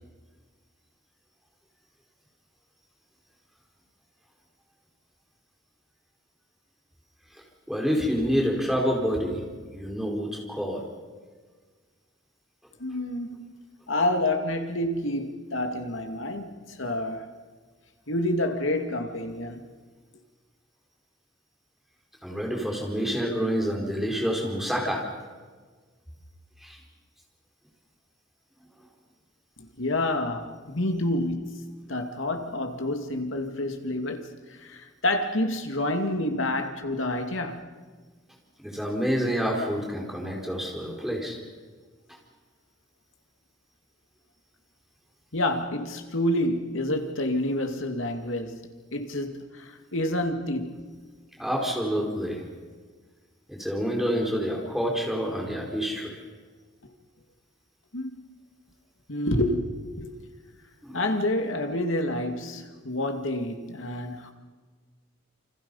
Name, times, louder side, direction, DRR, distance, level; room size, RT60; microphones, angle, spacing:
voice 1, 7.7-10.8 22.2-25.0 26.6-26.8 38.6-41.4 51.4-52.5 53.5-56.2 60.8-61.0, equal, ahead, 4.7 m, -28 dB
voice 2, 12.8-13.5 13.9-17.3 18.1-19.7 29.6-37.6 45.3-48.6 48.9-50.9 56.8-56.9 57.9-58.4 59.1-60.2 60.9-64.3, left 1 dB, 75° left, 2.3 m, -28 dB
28.5 x 25.5 x 5.6 m
head